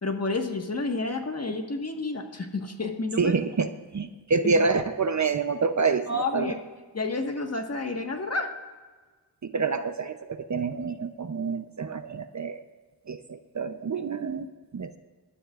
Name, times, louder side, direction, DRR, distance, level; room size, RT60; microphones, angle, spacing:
voice 1, 0.0-3.4 4.6-4.7 6.1-6.5 6.9-8.5, left 3 dB, 35° left, 4 dB, 1.6 m, -30 dB
voice 2, 3.2-6.5 9.4-12.6 13.1-15.0, right 4 dB, 40° right, 9 dB, 0.7 m, -27 dB
21.0 x 12.5 x 2.5 m, 1.4 s
cardioid pair, 80°, 45 cm